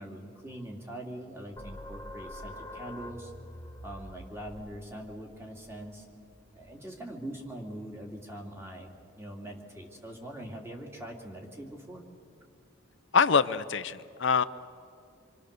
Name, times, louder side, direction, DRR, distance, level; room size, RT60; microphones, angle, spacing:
voice 1, 0.0-3.3 3.8-6.1 6.5-12.0, right 1 dB, 10° right, 0 dB, 2.6 m, -42 dB
sound 1, 1.6-6.8, left 1 dB, 15° left, 1.6 m, -46 dB
voice 2, 13.1-14.4, left 6 dB, 60° left, 12 dB, 0.6 m, -24 dB
27.0 x 24.5 x 6.7 m, 2.3 s
head